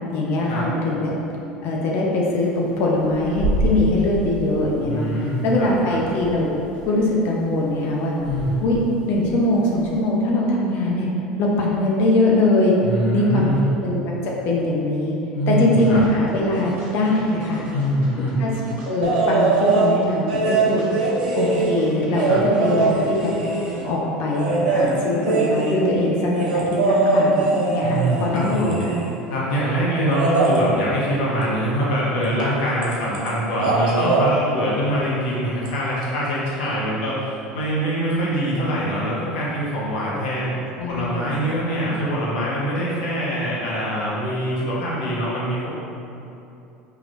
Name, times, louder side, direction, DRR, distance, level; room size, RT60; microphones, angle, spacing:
voice 1, 0.1-1.1 1.6-5.1 5.4-6.5 6.9-8.1 8.6-8.8 9.0-11.1 11.4-12.8 13.1-13.5 13.8-15.2 15.5-17.6 18.1-18.5 18.9-20.9 21.3-23.3 23.8-29.0 40.8-41.3, left 2 dB, 60° left, -3 dB, 0.7 m, -22 dB
sound 1, 2.4-2.5 2.8-5.4 5.8-7.2 7.6-10.0, right 1 dB, 30° left, 1.3 m, -29 dB
voice 2, 4.8-6.0 8.2-8.6 12.8-13.6 15.3-16.0 17.7-18.4 22.2-22.5 27.8-28.8 29.3-40.5 40.9-45.7, equal, 75° left, -6 dB, 1.2 m, -24 dB
sound 2, 15.8-23.8, equal, 50° right, 1.3 m, -39 dB
sound 3, 19.0-19.9 20.3-23.8 24.3-29.2 30.1-30.6 32.4-32.5 32.8-33.3 33.5-34.3 35.7-35.8, right 3 dB, 80° right, 0.6 m, -22 dB
4.8 x 3.0 x 2.6 m, 2.8 s
hypercardioid pair, 75°, 5 cm